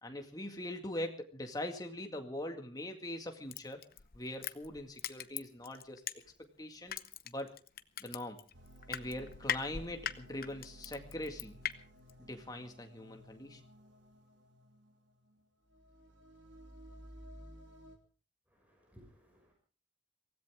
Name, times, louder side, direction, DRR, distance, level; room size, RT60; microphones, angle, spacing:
voice 1, 0.0-3.8 4.1-6.0 6.6-7.0 7.2-7.6 8.0-8.4 8.9-11.6 12.3-13.6, left 1 dB, 20° left, 5 dB, 2.0 m, -42 dB
Crushing, 3.5-6.5 6.9-11.7 12.1-12.2, left 9 dB, 50° left, 0.8 m, -40 dB
sound 1, 8.5-18.0, equal, 85° right, 3.0 m, -55 dB
voice 2, 18.5-19.5, equal, 10° right, 0 dB, 6.1 m, -61 dB
23.5 x 16.5 x 3.6 m, 0.37 s
head